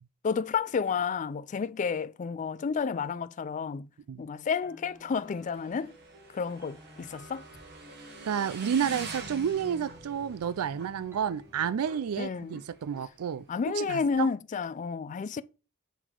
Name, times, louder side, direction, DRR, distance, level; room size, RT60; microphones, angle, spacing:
voice 1, 0.2-3.9 4.2-5.9 6.3-7.5 12.2-12.6 13.5-15.4, left 5 dB, 35° left, 0.3 m, -31 dB
sound 1, 4.5-12.2, equal, 10° right, 1.0 m, -56 dB
Motorcycle / Engine, 4.9-14.1, right 3 dB, 50° right, 1.4 m, -46 dB
voice 2, 8.2-14.3, right 8 dB, 80° right, 0.4 m, -31 dB
8.1 x 4.0 x 4.5 m
head